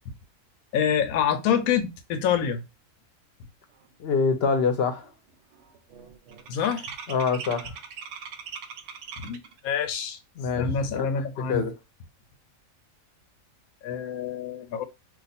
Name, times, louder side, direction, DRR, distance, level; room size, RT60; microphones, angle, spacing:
voice 1, 0.7-2.6 6.5-6.9 9.2-10.2 10.6-11.6 13.8-14.8, left 8 dB, 85° left, 1.0 m, -26 dB
sound 1, 3.9-4.0 4.3-4.7 5.0-9.6, right 6 dB, 70° right, 0.8 m, -41 dB
voice 2, 4.0-5.1 7.1-7.7 10.4-11.7, left 5 dB, 60° left, 0.7 m, -26 dB
2.4 x 2.4 x 4.0 m
omnidirectional pair, 1.5 m